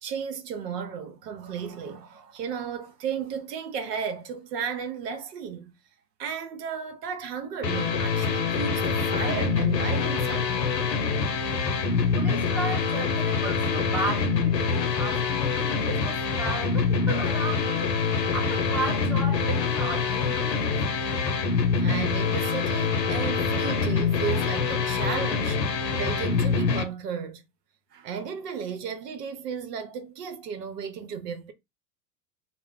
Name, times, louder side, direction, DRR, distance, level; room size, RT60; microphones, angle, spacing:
voice 1, 0.0-5.7 6.2-10.7 21.8-25.6 25.9-27.4 27.9-31.5, right 7 dB, 75° right, 0.8 m, -34 dB
sound 1, 7.6-26.8, left 5 dB, 90° left, 0.7 m, -25 dB
voice 2, 12.2-17.9 18.3-20.7, right 3 dB, 5° right, 0.7 m, -34 dB
2.2 x 2.0 x 3.6 m
hypercardioid pair, 85°, 48 cm